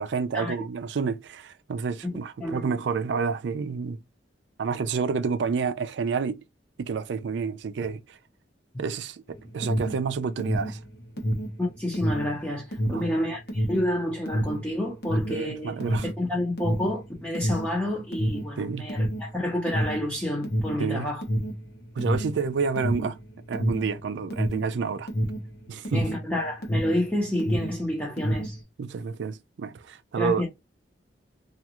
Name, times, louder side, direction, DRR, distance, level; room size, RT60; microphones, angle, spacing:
voice 1, 0.0-4.0 4.6-6.4 6.8-8.2 8.8-10.8 11.2-11.3 12.9-13.2 15.3-16.1 18.6-18.9 20.8-21.1 22.0-23.2 23.5-25.1 25.7-26.1 28.8-30.5, right 5 dB, 80° right, 0.4 m, -29 dB
voice 2, 2.0-2.7 8.7-8.8 11.6-21.2 25.9-28.6 30.2-30.5, left 1 dB, 10° left, 0.7 m, -29 dB
Alarm, 9.3-27.1 27.3-28.6, equal, 65° left, 0.9 m, -28 dB
2.4 x 2.3 x 2.9 m
head